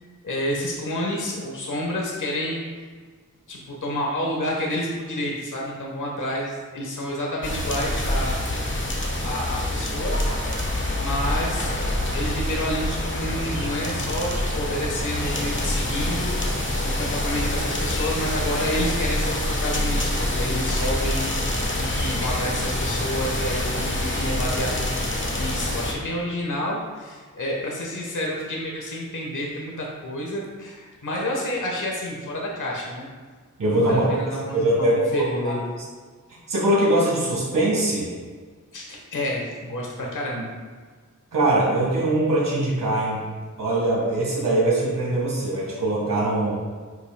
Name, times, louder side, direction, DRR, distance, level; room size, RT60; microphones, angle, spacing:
voice 1, 0.2-2.6 3.5-8.3 9.2-10.3 11.0-16.3 16.8-24.9 25.3-33.1 33.7-35.7 38.7-40.5, left 1 dB, 70° left, -2 dB, 1.3 m, -29 dB
sound 1, 7.4-25.9, left 1 dB, 35° left, 1.3 m, -26 dB
voice 2, 33.6-34.1 34.5-35.6 36.5-38.1 41.3-43.2 43.6-46.6, right 1 dB, 90° right, -5 dB, 1.9 m, -22 dB
9.4 x 6.0 x 2.3 m, 1.5 s
wide cardioid pair, 65°, 32 cm